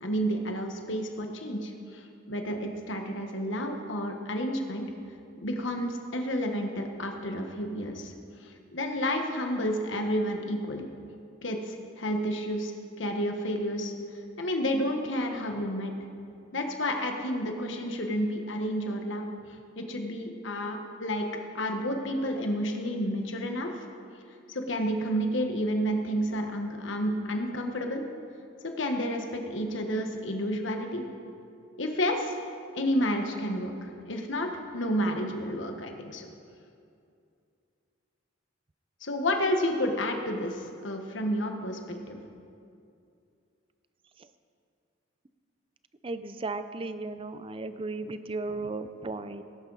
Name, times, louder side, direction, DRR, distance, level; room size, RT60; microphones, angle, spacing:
voice 1, 0.0-4.8 5.4-8.1 8.4-10.9 11.4-12.7 13.0-13.9 14.4-15.9 16.5-19.3 19.7-21.3 21.5-23.7 24.5-28.0 28.6-31.0 31.8-32.4 32.7-36.3 39.0-42.2, equal, 70° left, 4 dB, 1.4 m, -30 dB
voice 2, 46.0-49.4, right 3 dB, 30° right, 11 dB, 0.5 m, -35 dB
18.0 x 11.0 x 4.1 m, 2.5 s
head